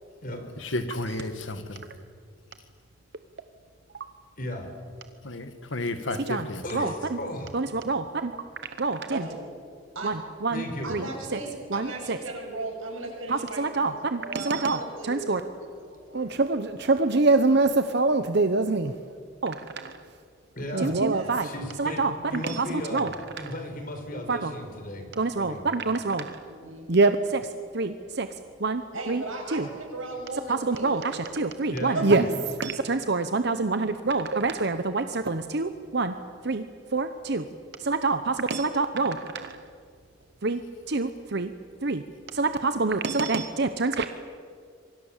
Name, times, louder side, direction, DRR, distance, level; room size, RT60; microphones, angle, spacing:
voice 1, 0.6-1.8 5.2-6.9, left 2 dB, 70° left, 9 dB, 2.0 m, -32 dB
voice 2, 4.4-4.7 6.6-7.6 10.5-10.9 20.5-21.0 21.4-23.1 23.4-25.1 25.3-25.6 31.7-32.4, left 1 dB, 45° left, 5 dB, 4.3 m, -35 dB
voice 3, 6.7-7.2 7.5-8.3 8.8-9.2 10.0-10.1 10.4-10.6 10.9-11.1 11.7-12.2 13.3-14.8 15.1-15.4 16.1-18.9 19.4-19.9 20.7-21.5 21.8-23.1 24.3-24.5 25.2-26.4 26.9-27.4 27.7-28.3 28.6-29.2 29.5-29.7 30.5-32.2 32.6-36.1 36.4-36.6 36.9-37.4 37.8-39.6 40.4-40.6 40.9-41.5 41.8-42.0 42.3-44.1, right 3 dB, 55° right, 9 dB, 0.9 m, -25 dB
voice 4, 9.1-9.4 9.9-10.2 10.8-16.7 21.1-21.3 26.5-26.9 28.9-31.4 31.9-32.1, right 2 dB, 85° right, 0 dB, 7.7 m, -37 dB
27.5 x 23.5 x 7.4 m, 2.2 s
head